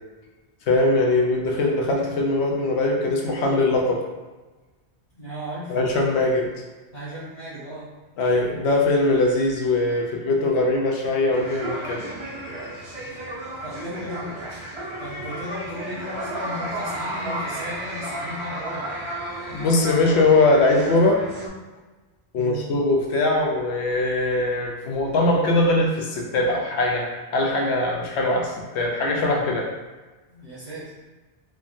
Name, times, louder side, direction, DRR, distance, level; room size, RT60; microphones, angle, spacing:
voice 1, 0.7-4.0 5.7-6.5 8.2-12.0 19.5-21.2 22.3-29.7, left 2 dB, 85° left, 0 dB, 0.9 m, -21 dB
voice 2, 5.1-5.8 6.9-7.9 13.6-14.4 15.0-18.9 22.3-22.6 30.3-31.0, equal, 40° left, -13 dB, 0.9 m, -35 dB
sound 1, 11.3-21.5, right 1 dB, 50° right, 0.3 m, -33 dB
3.3 x 2.2 x 2.5 m, 1.2 s
omnidirectional pair, 1.1 m